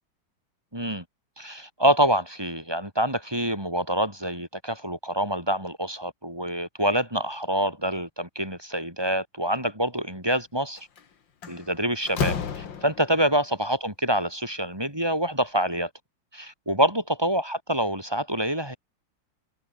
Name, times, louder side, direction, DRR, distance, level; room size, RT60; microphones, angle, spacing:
voice 1, 0.7-1.0 1.4-10.9 11.5-15.9 16.3-18.8, right 1 dB, 10° right, 6.3 m, -26 dB
Slam, 10.8-11.0 11.4-13.3, left 7 dB, 65° left, 2.6 m, -31 dB
omnidirectional pair, 2.2 m